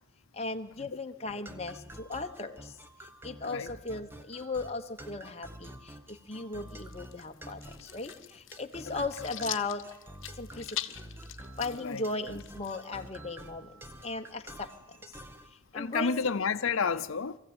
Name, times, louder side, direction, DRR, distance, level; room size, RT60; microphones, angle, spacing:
voice 1, 0.3-2.7 3.2-9.8 10.4-10.8 11.6-13.7 14.0-14.7 15.7-16.3, left 3 dB, 30° left, 1.1 m, -37 dB
sound 1, 1.5-15.5, right 1 dB, 10° right, 1.1 m, -48 dB
sound 2, 6.7-13.1, left 13 dB, 70° left, 1.0 m, -43 dB
voice 2, 15.7-17.4, left 5 dB, 85° left, 0.7 m, -30 dB
22.5 x 15.0 x 8.8 m
head